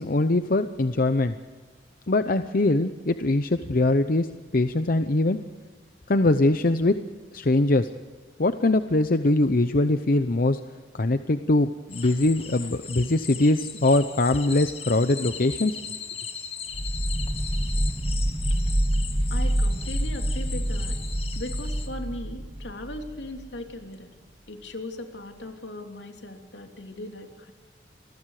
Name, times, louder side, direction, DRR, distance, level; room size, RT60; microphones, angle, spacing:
voice 1, 0.0-1.3 2.1-4.3 4.5-5.4 6.1-6.9 7.3-7.9 8.4-10.6 10.9-15.8, left 2 dB, 55° left, 10 dB, 0.8 m, -22 dB
sound 1, 11.9-21.9, left 7 dB, 35° left, 2.2 m, -38 dB
sound 2, 16.7-23.5, right 1 dB, 15° right, 0.9 m, -27 dB
voice 2, 19.3-20.9 21.3-24.1 24.5-27.5, left 1 dB, 80° left, 4 dB, 3.1 m, -38 dB
28.0 x 21.5 x 5.0 m, 1.4 s
head